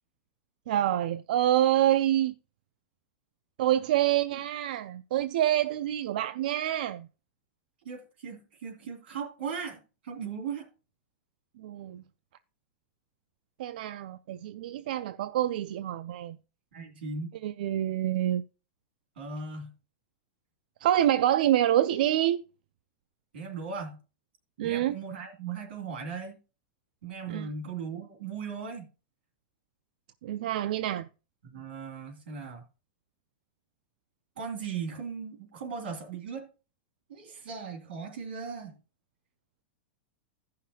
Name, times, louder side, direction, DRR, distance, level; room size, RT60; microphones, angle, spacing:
voice 1, 0.7-2.3 3.6-7.1 11.6-12.0 13.6-16.4 17.4-18.4 20.8-22.4 24.6-25.0 27.3-27.5 30.2-31.1, right 12 dB, 55° right, 0.3 m, -27 dB
voice 2, 7.8-10.7 16.7-17.3 19.2-19.7 23.3-24.0 24.6-26.4 27.0-28.9 31.4-32.6 34.4-36.5 37.1-38.8, right 5 dB, 80° right, 2.5 m, -38 dB
15.5 x 5.7 x 2.8 m
supercardioid pair, 175°, 6 cm